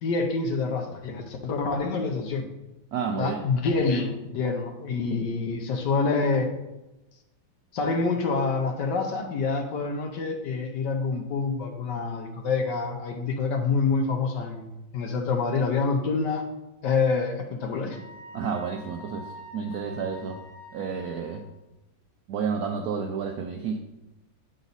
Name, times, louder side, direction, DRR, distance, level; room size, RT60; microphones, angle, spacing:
voice 1, 0.0-2.4 3.2-6.5 7.7-16.4 16.8-18.0, left 4 dB, 65° left, 4 dB, 1.3 m, -27 dB
voice 2, 2.9-3.4 18.3-20.4 20.7-21.4 22.3-23.8, right 6 dB, 80° right, 4 dB, 0.8 m, -30 dB
Wind instrument woodwind instrument, 17.9-21.4, equal, 20° left, 0.4 m, -45 dB
8.2 x 4.0 x 4.0 m, 0.97 s
omnidirectional pair, 2.1 m